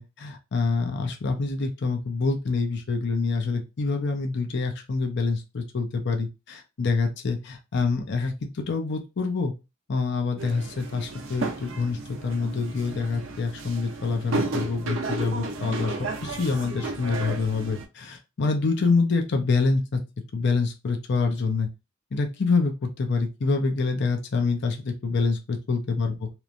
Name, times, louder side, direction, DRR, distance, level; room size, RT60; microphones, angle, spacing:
voice 1, 0.0-9.5 9.9-15.9 16.2-20.0 20.3-21.7 22.1-26.3, left 4 dB, 60° left, 5 dB, 0.5 m, -26 dB
sound 1, 10.4-17.8, right 3 dB, 70° right, 0.5 m, -33 dB
3.0 x 2.1 x 2.5 m, 0.25 s
head